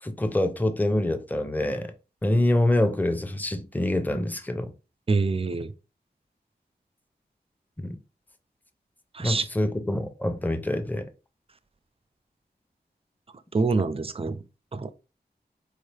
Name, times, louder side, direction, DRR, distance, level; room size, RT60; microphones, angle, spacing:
voice 1, 0.0-1.9 2.2-4.7 7.8-8.0 9.2-11.0, left 1 dB, 10° left, 0.6 m, -25 dB
voice 2, 5.1-5.7 9.1-9.5 13.5-14.4 14.7-14.9, right 4 dB, 35° right, 0.4 m, -25 dB
4.1 x 2.8 x 3.3 m
wide cardioid pair, 55°, 18 cm